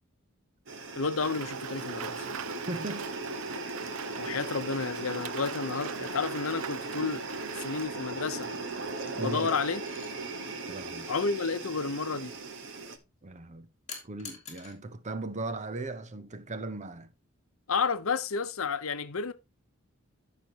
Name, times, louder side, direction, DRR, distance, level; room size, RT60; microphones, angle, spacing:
sound 1, 0.7-13.0, right 3 dB, 65° right, 1.3 m, -38 dB
voice 1, 0.9-2.3 4.2-7.2 7.5-8.5 9.2-9.8 11.1-12.3 17.7-19.3, left 4 dB, 75° left, 0.8 m, -31 dB
Rain, 1.2-7.8, right 9 dB, 85° right, 0.5 m, -43 dB
voice 2, 2.7-3.1 9.2-9.5 10.7-11.1 13.2-13.7 14.0-17.1, right 2 dB, 35° right, 0.8 m, -38 dB
sound 2, 9.9-10.1 13.9-14.8 16.1-16.3, left 6 dB, 35° left, 2.8 m, -44 dB
14.0 x 5.3 x 2.9 m
head